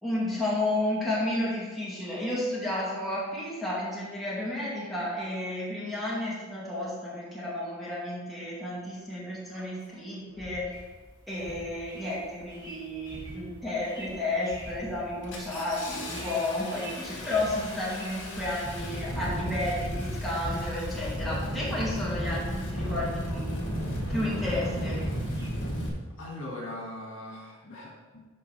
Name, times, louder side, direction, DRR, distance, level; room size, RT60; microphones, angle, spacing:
voice 1, 0.0-10.7 11.3-23.7 24.1-25.0, left 1 dB, ahead, -8 dB, 2.2 m, -32 dB
Engine starting, 9.6-9.7 10.4-10.7 11.4-11.7 12.1-12.6 13.0-13.6 14.0-14.2 14.5-25.9, equal, 65° left, 1.7 m, -34 dB
sound 1, 10.7-25.5, right 1 dB, 20° right, 2.0 m, -50 dB
voice 2, 26.2-28.3, left 1 dB, 80° left, -3 dB, 2.1 m, -40 dB
12.0 x 4.6 x 3.4 m, 1.3 s
head